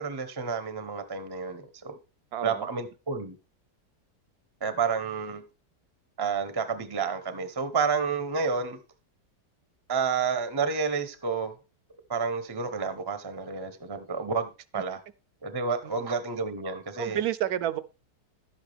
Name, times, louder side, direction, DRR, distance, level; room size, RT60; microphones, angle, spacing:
voice 1, 0.0-2.0 2.4-3.4 4.6-5.4 6.2-8.8 9.9-11.5 12.1-15.0 15.4-17.2, right 5 dB, 20° right, 0.6 m, -30 dB
voice 2, 2.3-2.7 15.8-16.1 17.0-17.8, right 12 dB, 75° right, 1.1 m, -30 dB
11.5 x 8.0 x 3.4 m
omnidirectional pair, 1.7 m